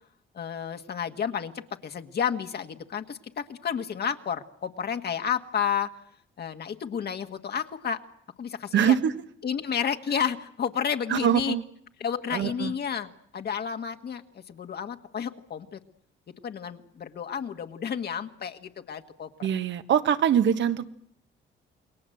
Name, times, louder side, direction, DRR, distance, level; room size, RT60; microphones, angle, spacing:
voice 1, 0.3-5.9 6.4-8.0 8.4-8.9 9.4-11.6 12.0-15.8 16.4-19.3, left 7 dB, 55° left, 6 dB, 1.7 m, -31 dB
voice 2, 8.7-9.1 11.1-11.6 12.3-12.7 19.4-20.8, right 9 dB, 65° right, 11 dB, 1.5 m, -23 dB
28.5 x 21.5 x 7.9 m, 0.67 s
cardioid pair, 90°, 20 cm